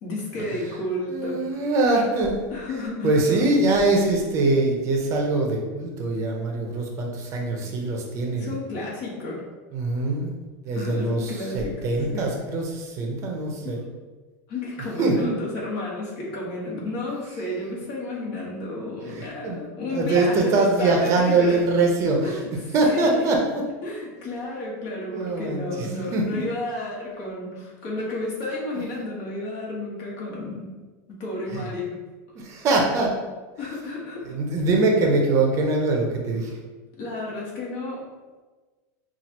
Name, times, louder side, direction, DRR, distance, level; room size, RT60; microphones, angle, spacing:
voice 1, 0.0-1.6 2.5-3.4 6.7-6.9 7.6-7.7 8.3-9.4 9.9-10.1 10.7-11.7 12.1-12.2 13.6-13.7 14.5-21.6 22.2-22.5 22.9-23.3 23.8-30.7 31.1-32.0 33.6-34.3 36.4-36.5 37.0-38.0, left 2 dB, 50° left, -4 dB, 1.4 m, -32 dB
voice 2, 1.1-2.4 3.0-8.6 9.7-10.3 10.6-13.8 15.0-15.3 19.0-19.6 19.9-22.4 22.7-23.6 25.1-26.4 28.8-28.9 31.5-31.7 32.3-33.1 34.2-36.6, right 2 dB, 35° right, 0 dB, 0.6 m, -23 dB
5.7 x 2.4 x 2.9 m, 1.3 s
supercardioid pair, 150°, 9 cm